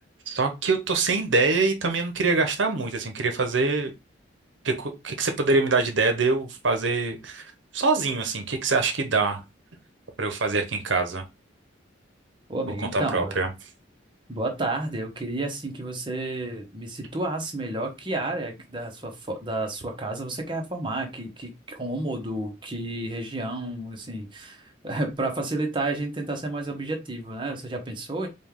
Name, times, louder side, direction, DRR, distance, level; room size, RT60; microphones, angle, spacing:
voice 1, 0.3-3.9 4.6-9.4 10.2-11.2 12.9-13.5, right 3 dB, 70° right, 6 dB, 0.8 m, -24 dB
voice 2, 12.5-13.4 14.3-28.3, right 2 dB, 25° right, 2 dB, 0.9 m, -31 dB
5.1 x 2.3 x 3.6 m, 0.24 s
head